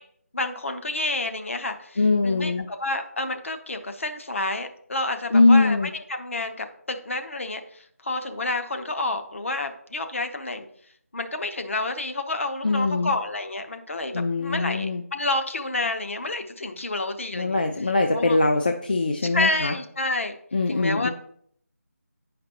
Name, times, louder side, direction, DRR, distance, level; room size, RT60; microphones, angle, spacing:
voice 1, 0.3-10.7 11.1-17.6 18.1-18.4 19.3-20.4 20.7-21.1, left 2 dB, 55° left, 6 dB, 0.8 m, -29 dB
voice 2, 2.0-2.7 5.3-5.9 12.6-13.1 14.1-15.0 17.3-19.7 20.5-21.1, left 3 dB, 35° left, 5 dB, 0.4 m, -21 dB
9.1 x 5.1 x 2.8 m, 0.65 s
figure-of-eight pair, 165°, 8 cm